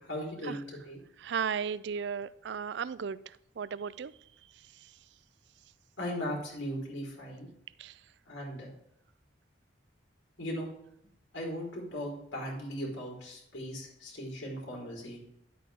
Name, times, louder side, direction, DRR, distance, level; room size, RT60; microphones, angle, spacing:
voice 1, 0.1-1.0 6.0-7.5 8.3-8.7 10.4-10.7 11.3-15.2, equal, 90° left, -3 dB, 4.1 m, -38 dB
voice 2, 1.2-3.2 3.6-4.1 7.8-7.9, right 7 dB, 70° right, 18 dB, 0.4 m, -35 dB
10.5 x 8.5 x 3.5 m, 0.75 s
head